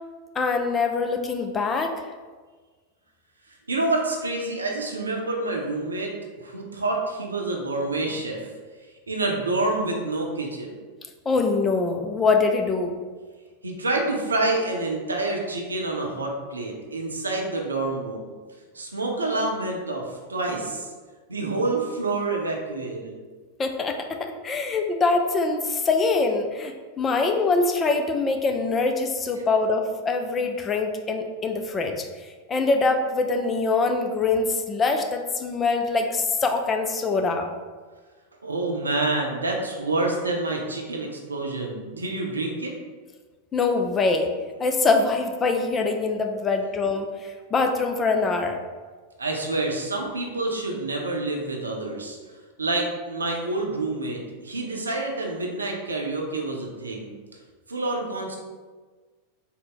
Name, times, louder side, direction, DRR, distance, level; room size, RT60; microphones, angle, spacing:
voice 1, 0.4-2.1 11.3-12.9 23.6-32.0 32.5-37.5 43.5-44.3 44.6-48.6, left 3 dB, 20° left, 4 dB, 0.4 m, -24 dB
voice 2, 3.7-8.5 9.1-10.8 13.6-18.3 18.7-20.9 21.3-23.2 38.4-42.7 49.2-52.2 52.6-57.1 57.7-58.4, right 2 dB, 75° right, 0 dB, 0.6 m, -27 dB
3.9 x 2.1 x 3.8 m, 1.4 s
figure-of-eight pair, 90°, 0 cm